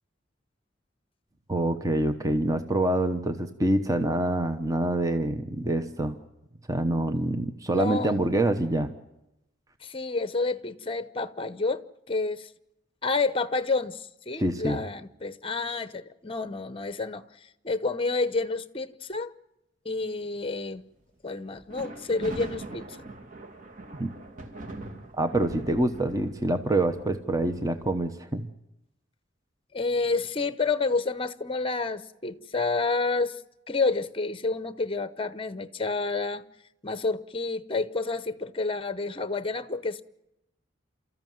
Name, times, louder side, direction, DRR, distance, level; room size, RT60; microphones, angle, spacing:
voice 1, 1.5-6.2 6.7-8.9 14.4-14.8 24.0-24.1 25.1-28.5, right 1 dB, 20° right, 1.0 m, -26 dB
voice 2, 7.7-8.2 9.8-11.8 12.1-12.5 13.0-17.2 17.6-19.3 19.8-20.8 21.2-23.1 29.7-33.4 33.7-36.4 36.8-40.0, left 3 dB, 30° left, 0.9 m, -29 dB
sound 1, 21.6-27.9, right 2 dB, 45° right, 2.4 m, -42 dB
29.0 x 14.0 x 9.3 m
head